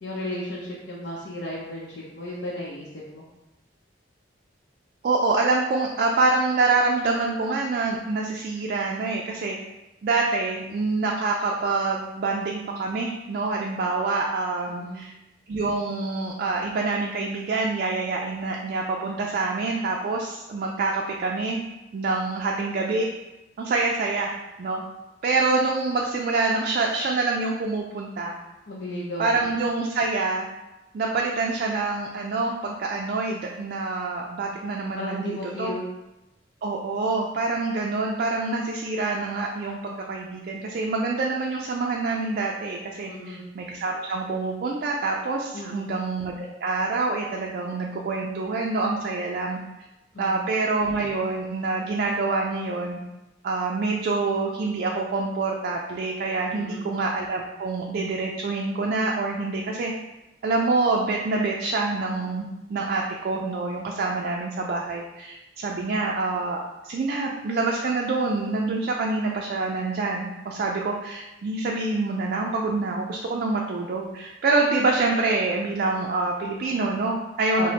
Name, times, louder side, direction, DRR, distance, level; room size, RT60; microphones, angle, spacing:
voice 1, 0.0-2.9 3.1-3.2 14.7-15.0 28.7-29.4 35.0-35.9 43.0-43.4 45.5-45.9 50.1-50.4 56.5-56.9 77.6-77.7, left 1 dB, 80° left, -5 dB, 0.6 m, -34 dB
voice 2, 5.0-9.6 10.0-15.1 15.5-21.6 21.9-23.1 23.6-24.8 25.2-28.4 29.2-30.5 30.9-35.7 36.6-49.6 50.2-53.0 53.4-59.9 60.4-66.6 66.8-77.7, right 3 dB, 55° right, 0 dB, 0.3 m, -26 dB
5.0 x 2.1 x 2.8 m, 0.99 s
head